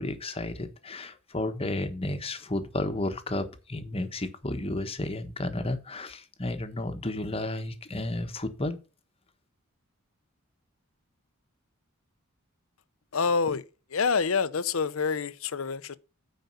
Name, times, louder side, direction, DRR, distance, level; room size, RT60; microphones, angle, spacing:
voice 1, 0.0-8.8, left 2 dB, 25° left, 1.2 m, -32 dB
voice 2, 13.1-13.6 13.9-16.0, left 5 dB, 75° left, 0.7 m, -27 dB
9.3 x 5.2 x 5.6 m
head